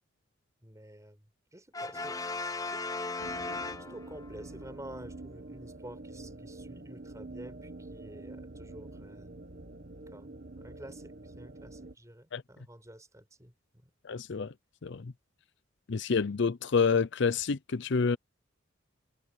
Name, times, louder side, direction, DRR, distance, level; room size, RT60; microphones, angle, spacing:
voice 1, 0.6-2.2 2.7-2.8 3.2-9.3 10.1-13.9, right 1 dB, 15° right, 5.0 m, -50 dB
Brass instrument, 1.7-4.4, left 3 dB, 20° left, 0.8 m, -37 dB
sound 1, 3.2-11.9, right 2 dB, 50° right, 1.7 m, -46 dB
voice 2, 14.0-14.5 14.8-15.1 15.9-18.2, left 5 dB, 60° left, 0.6 m, -28 dB
head